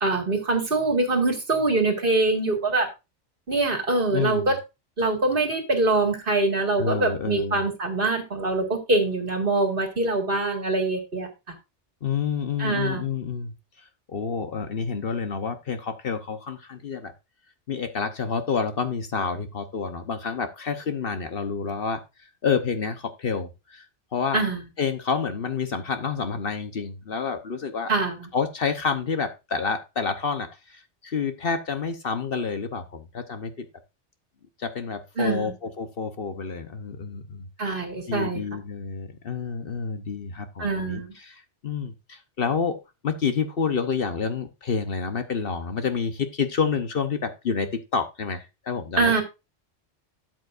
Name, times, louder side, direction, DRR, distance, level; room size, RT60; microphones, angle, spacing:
voice 1, 0.0-2.9 3.5-4.6 5.0-11.5 12.6-13.0 24.3-24.6 27.9-28.3 35.2-35.5 37.6-38.4 40.6-41.1 49.0-49.2, right 2 dB, 50° right, 3 dB, 2.1 m, -24 dB
voice 2, 4.1-4.5 6.8-7.6 12.0-13.5 14.1-17.1 17.7-23.9 24.1-24.4 24.8-27.9 28.3-33.7 34.6-37.5 38.1-42.8 43.0-49.2, left 5 dB, 55° left, 8 dB, 1.1 m, -29 dB
12.5 x 7.6 x 2.5 m, 0.26 s
omnidirectional pair, 1.2 m